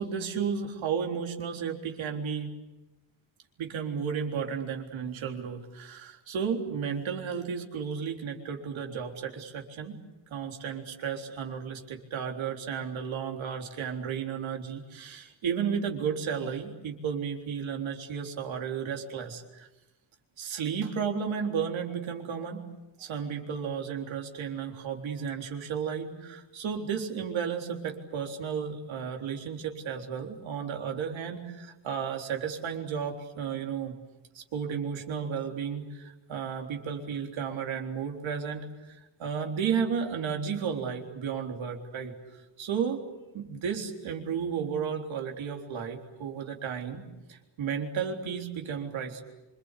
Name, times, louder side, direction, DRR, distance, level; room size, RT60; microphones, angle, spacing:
voice 1, 0.0-2.5 3.6-10.0 10.3-19.7 20.4-22.6 23.0-34.0 34.3-42.1 42.6-43.0 43.3-47.0 47.3-49.2, right 7 dB, 75° right, 3 dB, 3.8 m, -33 dB
27.0 x 25.0 x 8.3 m, 1.1 s
wide cardioid pair, 160°, 47 cm